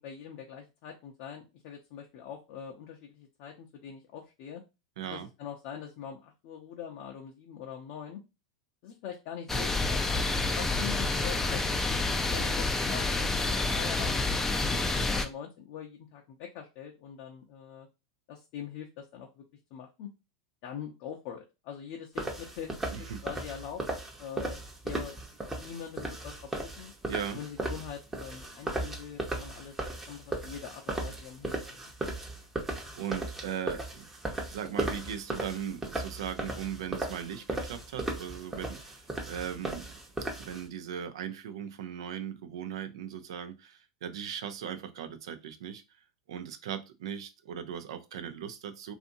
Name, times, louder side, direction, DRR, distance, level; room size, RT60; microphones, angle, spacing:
voice 1, 0.0-4.6 5.1-8.2 8.8-17.9 18.3-19.4 19.7-20.1 20.6-23.8 24.2-26.9 27.3-29.8 30.1-31.8, left 8 dB, 55° left, 0.6 m, -43 dB
voice 2, 5.0-5.3 22.9-23.2 27.1-27.4 33.0-34.1 34.5-39.9 40.4-45.8 46.3-48.9, right 9 dB, 70° right, 0.5 m, -38 dB
sound 1, 9.5-15.3, left 3 dB, 10° left, 0.4 m, -28 dB
sound 2, 22.2-40.6, right 2 dB, 10° right, 0.8 m, -36 dB
2.6 x 2.5 x 2.6 m
hypercardioid pair, 105°, 3 cm